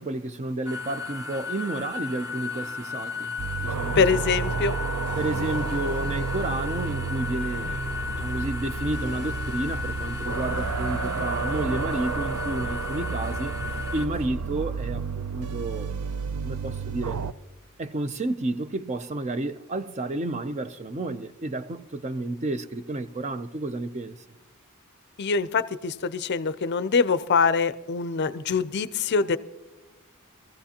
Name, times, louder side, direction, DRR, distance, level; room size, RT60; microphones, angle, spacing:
voice 1, 0.0-3.4 3.6-4.2 5.2-7.9 8.2-13.5 13.9-16.0 16.4-17.2 17.8-24.2, right 2 dB, 30° right, 0.4 m, -31 dB
sound 1, 0.6-14.0, left 5 dB, 15° right, 0.8 m, -35 dB
sound 2, 3.4-17.3, right 5 dB, 85° right, 0.5 m, -31 dB
voice 2, 4.0-4.8 25.2-29.4, left 5 dB, 50° left, 0.5 m, -24 dB
sound 3, 7.3-14.3, left 2 dB, 70° right, 3.0 m, -42 dB
23.5 x 15.0 x 2.8 m
head